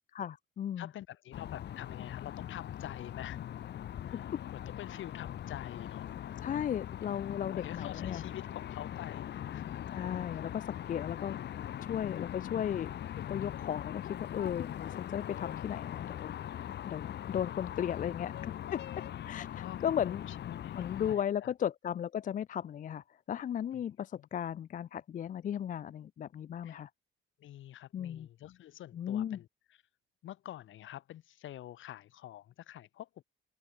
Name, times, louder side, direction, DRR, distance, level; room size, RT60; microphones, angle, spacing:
voice 1, 0.1-0.9 6.4-8.2 9.9-11.4 11.8-12.9 13.2-18.8 19.3-20.2 20.8-26.9 27.9-28.3 28.9-29.4, left 9 dB, 40° left, 0.4 m, -36 dB
voice 2, 0.8-3.5 4.1-6.1 7.5-9.7 11.4-12.3 19.6-20.8 21.1-21.5 23.7-23.8 24.1-24.3 26.6-26.8 27.4-29.8 30.2-33.2, left 13 dB, 80° left, 3.2 m, -47 dB
sound 1, 1.3-21.1, left 11 dB, 60° left, 0.9 m, -41 dB
open air
cardioid pair, 90°, 20 cm